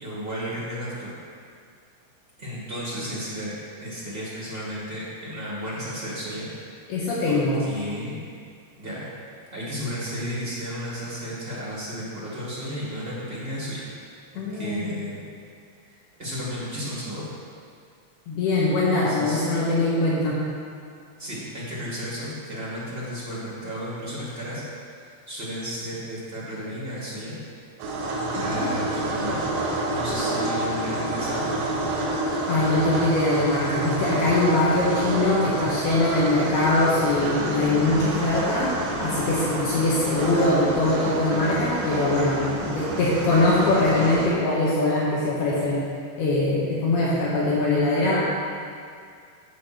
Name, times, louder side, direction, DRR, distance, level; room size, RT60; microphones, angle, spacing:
voice 1, 0.0-1.1 2.4-3.5 3.8-6.5 7.2-8.1 8.8-13.9 14.3-15.2 15.8-17.3 19.0-19.4 21.2-27.4 28.4-29.5 29.9-31.4, equal, 40° right, -7 dB, 0.8 m, -33 dB
voice 2, 6.9-7.6 14.4-15.0 18.3-20.4 28.4-28.7 32.5-38.7 39.0-45.8 46.2-48.3, left 2 dB, 70° left, -6 dB, 3.2 m, -22 dB
sound 1, 27.8-44.3, right 2 dB, 85° right, 3.8 m, -28 dB
11.0 x 7.6 x 4.4 m, 2.3 s
omnidirectional pair, 5.0 m